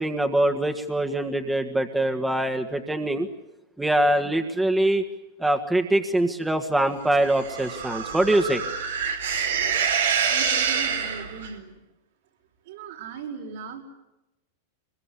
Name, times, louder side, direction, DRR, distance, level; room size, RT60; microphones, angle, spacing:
voice 1, 0.0-3.3 3.8-5.0 5.4-8.6, right 1 dB, 5° right, 5 dB, 1.8 m, -23 dB
sound 1, 7.2-11.5, right 6 dB, 90° right, 3.9 m, -26 dB
voice 2, 10.2-11.8 12.6-13.8, right 6 dB, 75° right, 0 dB, 6.0 m, -38 dB
24.0 x 22.0 x 8.5 m, 0.96 s
hypercardioid pair, 115°, 0 cm